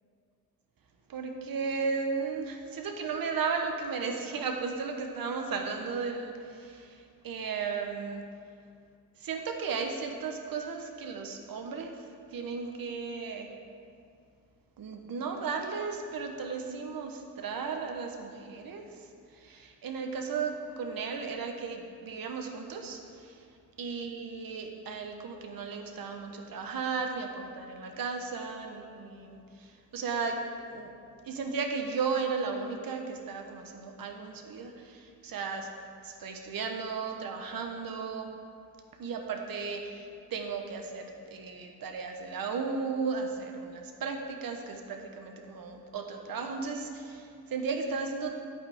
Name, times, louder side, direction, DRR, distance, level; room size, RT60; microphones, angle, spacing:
voice 1, 1.1-7.0 7.2-8.3 9.2-12.0 12.3-13.5 14.8-18.8 19.3-23.5 23.8-30.9 31.2-35.7 36.0-38.3 39.0-48.3, right 5 dB, 70° right, 3 dB, 1.1 m, -35 dB
11.0 x 8.7 x 3.6 m, 2.4 s
wide cardioid pair, 155°, 36 cm